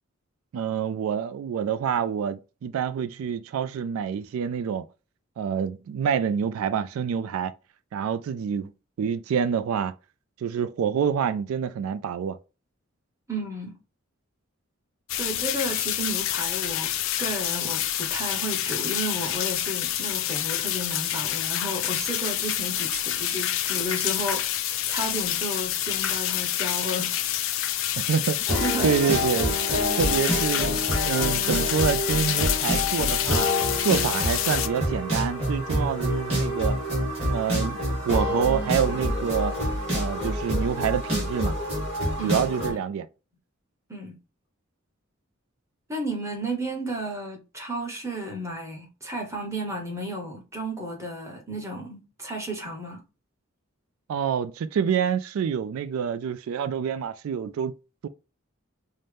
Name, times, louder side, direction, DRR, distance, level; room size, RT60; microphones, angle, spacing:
voice 1, 0.5-4.9 5.4-7.5 7.9-8.7 9.0-9.9 10.4-12.4 28.0-28.5 28.8-29.6 30.0-33.5 33.8-36.8 37.3-39.6 39.9-41.6 42.2-43.1 54.1-57.7 58.0-58.1, right 7 dB, 90° right, 0.3 m, -27 dB
voice 2, 13.3-13.8 15.2-16.9 17.2-24.5 24.9-27.1 28.5-29.0 42.2-42.8 43.9-44.2 45.9-53.0, right 1 dB, 15° right, 1.0 m, -33 dB
sound 1, 15.1-34.7, left 12 dB, 70° left, 0.4 m, -28 dB
sound 2, 28.5-42.7, equal, 30° right, 2.4 m, -27 dB
5.4 x 2.1 x 3.3 m
head